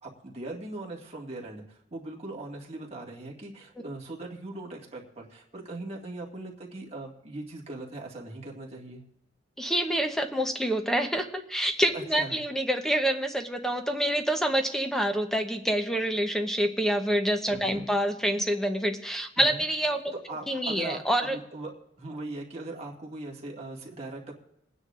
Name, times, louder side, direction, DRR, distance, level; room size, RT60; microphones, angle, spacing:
voice 1, 0.0-9.0 11.9-12.4 17.5-17.9 19.4-19.6 20.3-21.7 22.0-24.3, right 2 dB, 35° right, -1 dB, 1.9 m, -40 dB
voice 2, 9.6-20.1 20.5-21.4, right 1 dB, ahead, 5 dB, 0.8 m, -27 dB
28.0 x 9.7 x 2.5 m, 0.80 s
head